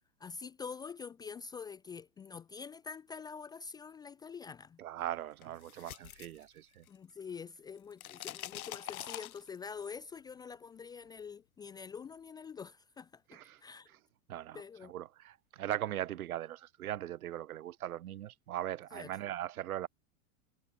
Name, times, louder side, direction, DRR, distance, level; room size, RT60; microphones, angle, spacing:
voice 1, 0.2-4.8 6.9-13.9 14.5-14.9 18.9-19.1, left 6 dB, 10° left, 0.5 m, -46 dB
voice 2, 4.8-6.8 13.3-13.6 13.9-14.0 14.3-19.9, right 12 dB, 85° right, 3.3 m, -40 dB
sound 1, 5.4-7.1 7.4-9.8, left 14 dB, 80° left, 1.5 m, -45 dB
supercardioid pair, 145°, 42 cm